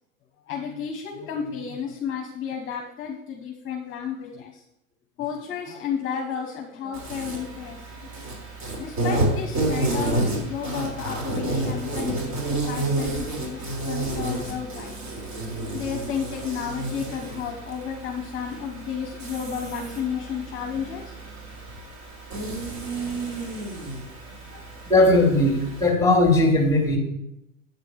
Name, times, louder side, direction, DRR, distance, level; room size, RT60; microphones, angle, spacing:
voice 1, 0.5-4.6 5.2-8.1 8.8-15.0 15.7-21.1 24.5-24.9, left 7 dB, 30° left, 2 dB, 1.4 m, -32 dB
Insect, 6.9-25.9, right 2 dB, 40° right, 3.8 m, -30 dB
voice 2, 24.9-27.0, left 2 dB, 5° left, 3 dB, 2.3 m, -18 dB
8.4 x 6.8 x 4.9 m, 0.84 s
figure-of-eight pair, 95°, 40 cm